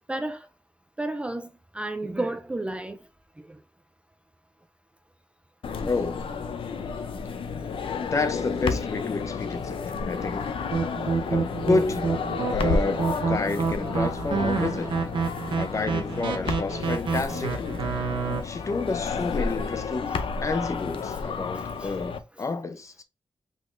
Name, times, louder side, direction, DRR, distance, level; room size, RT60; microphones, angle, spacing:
voice 1, 0.1-0.4 1.0-1.5 1.7-3.0 21.8-21.9, right 2 dB, 15° right, 0.3 m, -31 dB
sound 1, 5.6-22.2, left 5 dB, 85° left, 0.5 m, -31 dB
voice 2, 5.8-6.3 8.0-10.5 11.3-12.2 12.5-15.0 15.5-17.9 18.4-20.1 20.4-23.0, left 3 dB, 35° left, 0.6 m, -30 dB
sound 2, 10.7-18.4, right 5 dB, 70° right, 0.8 m, -28 dB
5.1 x 3.8 x 2.5 m
wide cardioid pair, 175°, 9 cm